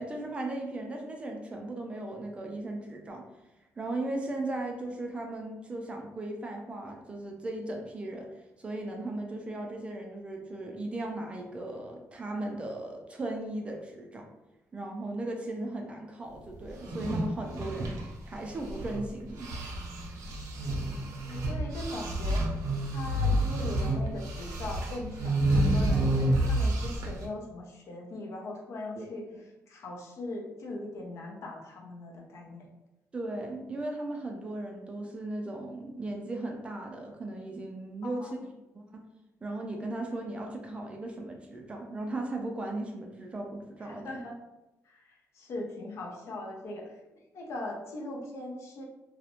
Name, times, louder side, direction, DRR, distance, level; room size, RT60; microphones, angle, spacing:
voice 1, 0.0-3.2 3.8-8.3 8.6-14.2 14.7-18.0 18.2-19.5 29.0-29.1 33.1-38.4 38.7-39.0 39.4-44.2, right 2 dB, 20° right, 1 dB, 0.3 m, -37 dB
sound 1, 16.7-19.1 19.4-27.3, right 1 dB, 80° right, 0.5 m, -29 dB
voice 2, 21.2-22.4 22.9-29.3 29.7-32.7 38.0-38.4 43.9-44.3 44.8-48.8, left 2 dB, 60° left, 0 dB, 0.5 m, -40 dB
2.4 x 2.0 x 2.8 m, 0.95 s
cardioid pair, 170°, 6 cm